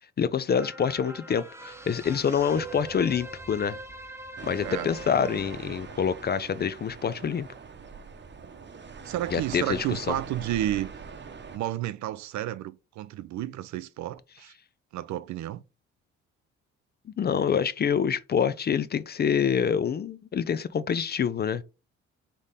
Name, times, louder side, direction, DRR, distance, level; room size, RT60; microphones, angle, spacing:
voice 1, 0.2-3.8 4.5-7.5 9.3-10.2 17.2-21.6, left 7 dB, 30° left, 0.4 m, -26 dB
sound 1, 0.5-7.2 7.6-7.7, right 2 dB, 10° right, 0.8 m, -43 dB
sound 2, 4.4-11.6, right 5 dB, 35° right, 0.9 m, -42 dB
voice 2, 9.0-10.9 11.5-14.5 14.9-15.6, right 13 dB, 60° right, 0.5 m, -31 dB
3.6 x 3.6 x 4.1 m
hypercardioid pair, 55°, 32 cm